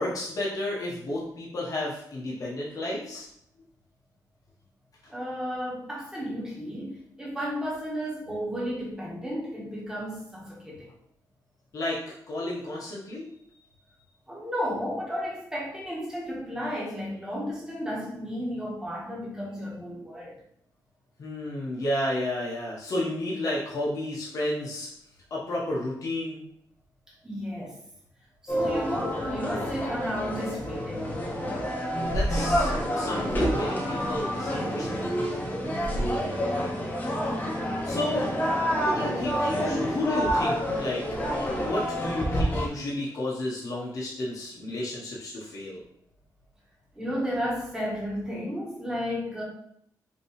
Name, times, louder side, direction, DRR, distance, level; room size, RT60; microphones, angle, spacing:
voice 1, 0.0-3.3 11.7-13.3 21.2-24.9 25.3-26.4 31.9-35.2 37.8-38.3 38.7-45.8, left 1 dB, 55° left, -5 dB, 1.2 m, -32 dB
voice 2, 5.1-10.9 14.3-20.4 27.2-27.8 28.4-31.2 35.9-36.7 46.9-49.4, equal, 10° right, -5 dB, 1.4 m, -33 dB
sound 1, 28.5-42.7, equal, 25° left, 1.0 m, -28 dB
5.4 x 3.0 x 3.2 m, 0.69 s
wide cardioid pair, 145°, 7 cm